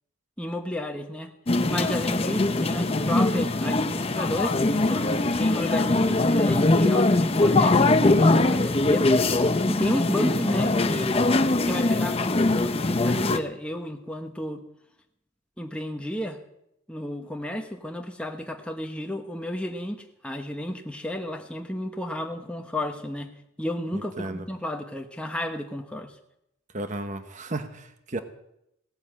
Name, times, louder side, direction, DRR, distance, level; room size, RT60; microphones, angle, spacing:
voice 1, 0.4-1.3 1.7-9.1 9.7-11.3 11.6-14.6 15.6-16.4 16.9-23.3 23.6-26.1, left 1 dB, 5° left, 3 dB, 1.1 m, -32 dB
sound 1, 1.5-13.4, left 2 dB, 30° left, 0.6 m, -22 dB
voice 2, 23.9-24.5 26.7-28.2, right 2 dB, 35° right, 8 dB, 1.1 m, -34 dB
17.5 x 8.7 x 7.5 m, 0.80 s
head